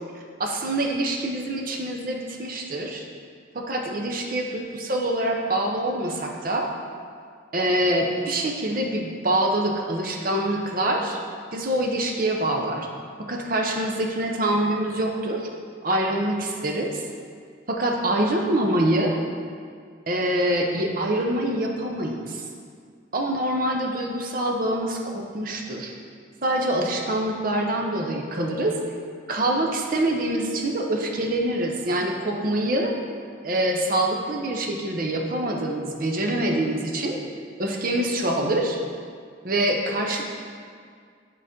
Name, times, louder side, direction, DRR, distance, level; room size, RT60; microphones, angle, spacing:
voice 1, 0.4-3.1 3.5-6.7 7.5-11.2 11.5-12.9 13.3-15.5 15.8-17.0 17.7-19.2 20.1-22.4 23.1-25.9 26.4-28.8 29.3-32.9 33.4-37.2 37.6-38.8 39.4-40.2, right 1 dB, 45° right, 1 dB, 0.6 m, -25 dB
7.8 x 4.0 x 3.7 m, 2.1 s
head